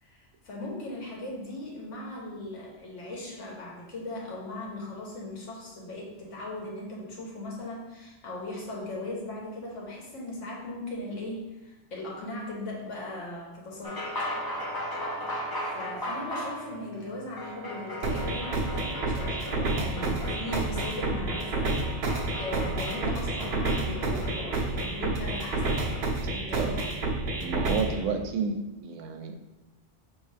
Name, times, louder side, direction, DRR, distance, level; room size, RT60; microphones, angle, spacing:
voice 1, 0.0-14.3 15.6-22.0 22.4-25.9 26.3-26.9, left 1 dB, 85° left, -3 dB, 1.4 m, -38 dB
sound 1, 13.8-26.2, equal, 30° left, 0.4 m, -37 dB
sound 2, 18.0-28.0, right 2 dB, 55° right, 0.8 m, -29 dB
voice 2, 27.4-29.4, right 5 dB, 90° right, 6 dB, 0.9 m, -31 dB
5.3 x 3.0 x 3.3 m, 1.0 s
omnidirectional pair, 1.2 m